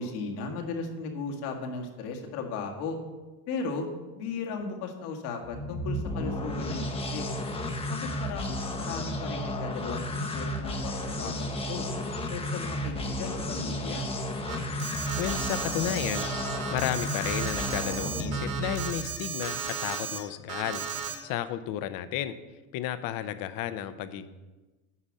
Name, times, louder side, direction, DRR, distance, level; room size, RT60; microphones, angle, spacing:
voice 1, 0.0-3.0 3.5-3.9 4.2-7.3 7.9-11.8 12.3-14.1, left 4 dB, 75° left, 2 dB, 2.0 m, -36 dB
sound 1, 5.4-19.2, left 1 dB, 10° left, 0.8 m, -33 dB
Alarm, 14.5-20.2 20.5-21.1, right 6 dB, 60° right, 2.2 m, -35 dB
voice 2, 15.2-16.3 16.7-20.8 21.2-22.4 22.7-24.3, left 11 dB, 50° left, 12 dB, 0.7 m, -32 dB
9.8 x 5.1 x 7.4 m, 1.2 s
supercardioid pair, 140°, 46 cm